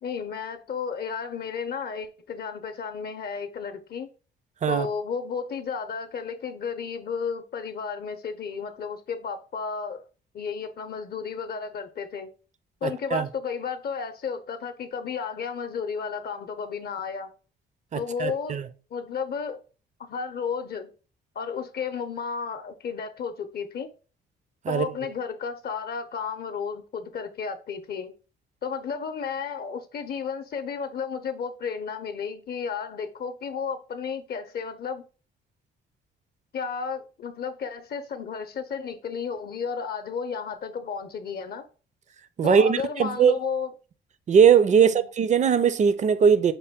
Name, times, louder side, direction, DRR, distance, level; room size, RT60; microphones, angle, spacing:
voice 1, 0.0-4.1 4.7-10.0 10.3-12.3 12.8-17.3 17.9-18.6 18.9-19.6 20.0-20.9 21.3-23.9 24.7-28.1 28.6-35.0 36.5-41.6 42.4-43.7 44.8-45.1, left 6 dB, 55° left, 0.6 m, -33 dB
voice 2, 12.8-13.3 17.9-18.6 24.6-24.9 42.4-43.4 44.3-46.5, right 7 dB, 35° right, 0.4 m, -20 dB
5.5 x 2.2 x 3.5 m
cardioid pair, 90°, 20 cm